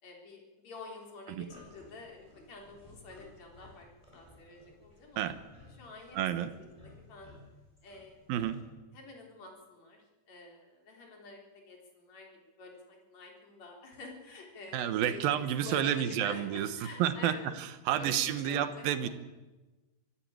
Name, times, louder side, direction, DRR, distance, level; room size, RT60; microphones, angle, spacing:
voice 1, 0.0-5.3 5.8-6.3 6.8-7.3 7.8-8.3 8.9-17.5 18.0-19.1, left 3 dB, 45° left, 1 dB, 4.9 m, -48 dB
sound 1, 1.5-8.6, left 1 dB, 5° left, 7.3 m, -57 dB
voice 2, 6.1-6.5 8.3-8.6 14.7-16.7 17.0-19.1, right 10 dB, 70° right, 11 dB, 2.6 m, -30 dB
24.0 x 13.5 x 8.8 m, 1.1 s
omnidirectional pair, 4.8 m